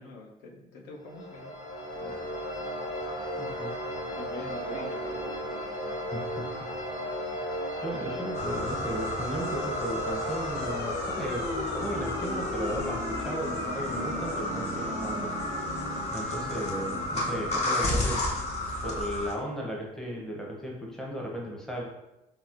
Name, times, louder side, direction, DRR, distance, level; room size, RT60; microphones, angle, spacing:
voice 1, 0.0-1.5 1.9-2.3 4.1-5.6 17.6-18.3, left 2 dB, 90° left, -2 dB, 0.7 m, -44 dB
sound 1, 1.0-19.7, equal, 60° left, 1.3 m, -36 dB
voice 2, 3.4-3.7 6.1-6.5 7.8-15.4 16.1-18.3 18.8-21.8, equal, 5° left, -2 dB, 0.7 m, -35 dB
sound 2, 8.3-19.3, left 1 dB, 40° left, 0.7 m, -33 dB
4.1 x 2.0 x 2.4 m, 0.94 s
cardioid pair, 110°, 17 cm